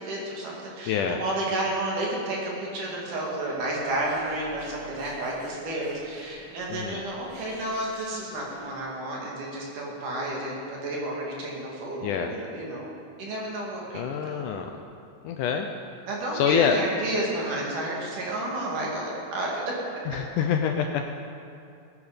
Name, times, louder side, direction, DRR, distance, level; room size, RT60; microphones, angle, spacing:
voice 1, 0.0-12.9 13.2-14.4 16.1-19.7, right 1 dB, 60° right, -3 dB, 3.8 m, -31 dB
voice 2, 0.9-1.2 6.7-7.0 12.0-12.4 13.9-14.7 15.2-15.7 16.3-16.8 20.1-21.0, left 7 dB, 80° left, 4 dB, 1.9 m, -26 dB
Bird, 3.7-8.8, equal, 30° right, 3.3 m, -50 dB
19.5 x 10.0 x 5.1 m, 2.5 s
omnidirectional pair, 4.2 m